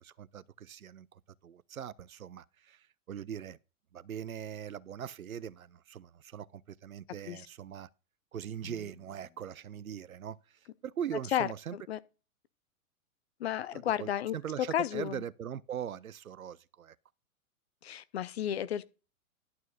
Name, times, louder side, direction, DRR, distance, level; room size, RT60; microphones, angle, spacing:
voice 1, 0.0-3.6 3.9-7.9 8.3-11.8 13.7-17.0, right 9 dB, 70° right, 0.6 m, -41 dB
Drum, 8.6-10.7, left 10 dB, 25° left, 1.0 m, -58 dB
voice 2, 11.3-12.0 13.4-15.2 17.8-18.8, left 10 dB, 45° left, 0.7 m, -33 dB
11.0 x 6.2 x 4.0 m
figure-of-eight pair, 110°, 44 cm